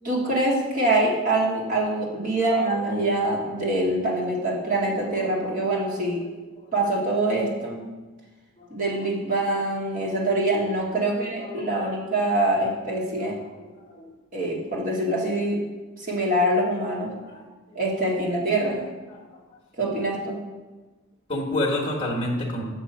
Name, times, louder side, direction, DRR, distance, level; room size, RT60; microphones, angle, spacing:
voice 1, 0.0-6.2 6.7-7.9 8.7-13.4 14.3-15.6 16.0-17.1 17.7-18.8 19.8-20.4, right 1 dB, 35° right, -4 dB, 1.8 m, -24 dB
voice 2, 2.3-2.7 6.0-6.1 8.6-8.7 11.0-11.1 11.4-11.9 13.0-13.3 13.9-14.0 17.2-17.4 19.1-19.2 21.3-22.6, left 1 dB, 25° left, -3 dB, 1.2 m, -29 dB
6.9 x 6.0 x 5.3 m, 1.3 s
head